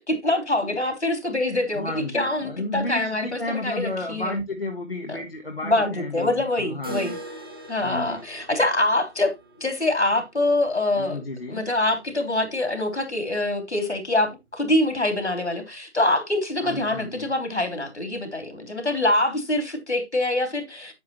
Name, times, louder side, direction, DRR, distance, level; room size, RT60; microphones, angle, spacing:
voice 1, 0.0-4.3 5.1-5.2 5.6-7.1 7.7-9.3 9.6-11.2 11.5-20.9, left 1 dB, 70° left, 3.3 m, -25 dB
voice 2, 1.7-7.2 7.5-8.2 11.0-11.6 16.6-17.3, left 2 dB, 55° left, 1.5 m, -32 dB
sound 1, 6.8-12.6 12.9-13.0 13.4-13.5 14.0-14.1 15.0-15.1, right 1 dB, 20° right, 1.3 m, -43 dB
9.5 x 7.6 x 2.9 m
figure-of-eight pair, 170°, 35 cm